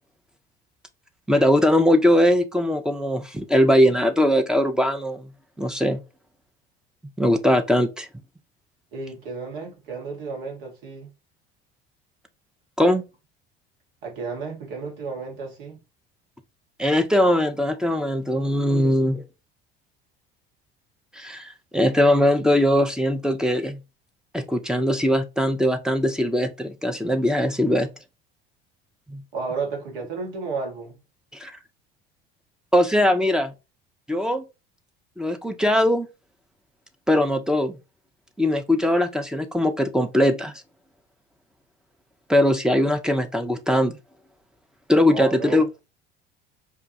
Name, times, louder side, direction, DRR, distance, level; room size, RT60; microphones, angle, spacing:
voice 1, 1.3-5.3 5.6-6.0 7.2-8.1 12.8-13.0 16.8-19.2 21.1-23.8 24.3-27.9 29.1-29.2 31.3-31.5 32.7-33.5 34.1-34.4 35.2-36.1 37.1-37.8 38.4-40.5 42.3-44.0 44.9-45.7, left 1 dB, ahead, 0.6 m, -20 dB
voice 2, 8.9-11.1 14.0-15.8 29.3-31.0 45.1-45.6, right 4 dB, 70° right, 1.4 m, -32 dB
5.4 x 2.3 x 2.8 m
hypercardioid pair, 65°, 30 cm